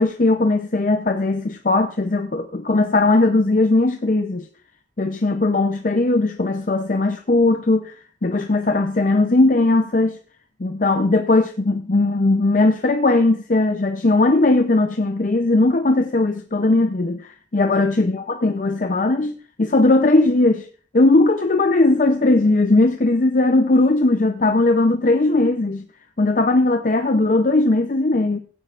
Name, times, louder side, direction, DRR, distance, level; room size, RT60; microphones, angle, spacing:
voice 1, 0.0-4.5 5.0-7.9 8.2-10.2 10.6-20.7 20.9-25.8 26.2-28.4, left 2 dB, 45° left, 0.6 m, -18 dB
16.5 x 8.9 x 2.5 m
head